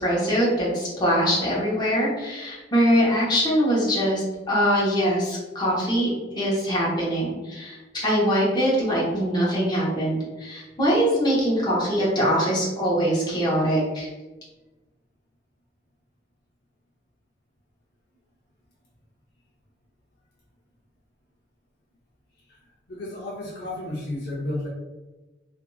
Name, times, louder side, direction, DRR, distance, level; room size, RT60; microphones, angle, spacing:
voice 1, 0.0-14.1, equal, 25° left, -7 dB, 0.9 m, -23 dB
voice 2, 22.9-24.7, left 1 dB, 60° left, -5 dB, 0.7 m, -32 dB
2.7 x 2.6 x 2.2 m, 1.1 s
head